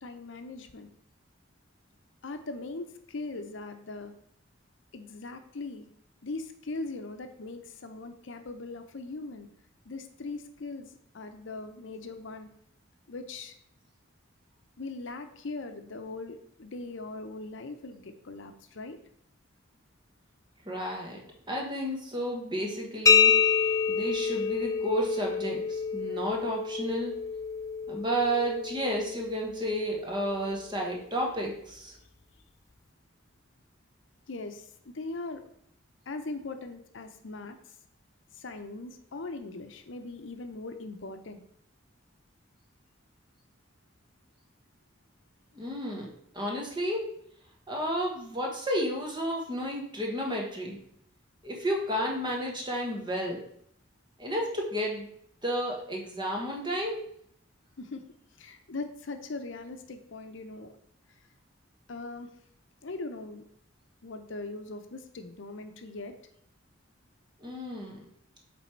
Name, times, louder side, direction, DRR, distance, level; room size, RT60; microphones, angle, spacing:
voice 1, 0.0-0.9 2.2-4.1 4.9-5.9 6.2-9.5 9.8-12.5 13.1-13.5 14.8-19.0 34.3-35.4 36.1-37.6 38.3-41.4 57.8-58.0 58.4-60.7 61.9-62.3 62.8-63.4 64.0-66.1, left 3 dB, 70° left, 7 dB, 0.7 m, -40 dB
voice 2, 20.6-23.3 23.9-27.1 27.9-32.0 45.5-46.1 46.3-47.1 47.7-50.8 51.4-53.4 54.2-55.1 55.4-57.0 67.4-68.0, equal, 25° right, 0 dB, 1.3 m, -32 dB
sound 1, 23.1-30.6, left 6 dB, 15° left, 0.4 m, -28 dB
8.2 x 3.4 x 4.5 m, 0.68 s
head